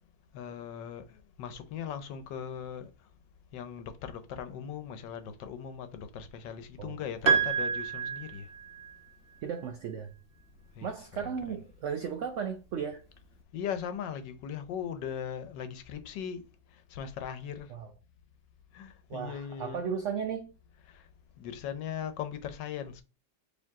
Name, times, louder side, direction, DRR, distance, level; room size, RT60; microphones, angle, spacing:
voice 1, 0.3-3.1 3.5-8.5 10.7-10.9 11.2-11.3 13.5-17.7 18.7-19.8 20.9-21.1 21.4-23.0, left 8 dB, 80° left, 1.4 m, -39 dB
Piano, 7.3-8.9, right 6 dB, 40° right, 0.8 m, -28 dB
voice 2, 9.4-10.1 10.8-13.0 17.7-17.9 19.1-20.5, right 7 dB, 80° right, 0.6 m, -35 dB
4.5 x 3.2 x 3.6 m
omnidirectional pair, 1.9 m